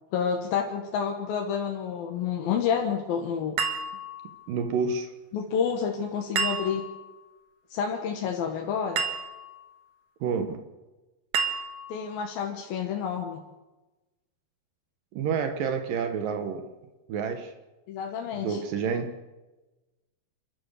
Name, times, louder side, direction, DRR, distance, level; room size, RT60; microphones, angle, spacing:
voice 1, 0.1-3.6 5.3-6.9 7.7-9.0 11.9-13.4 17.9-18.6, left 7 dB, 80° left, 3.3 m, -29 dB
sound 1, 3.6-4.5 6.4-7.1 9.0-9.6 11.3-12.1, right 5 dB, 55° right, 2.6 m, -31 dB
voice 2, 4.5-5.1 10.2-10.7 15.1-16.7 17.1-17.5 18.3-19.1, right 6 dB, 75° right, 2.8 m, -29 dB
28.5 x 14.0 x 6.7 m
omnidirectional pair, 4.1 m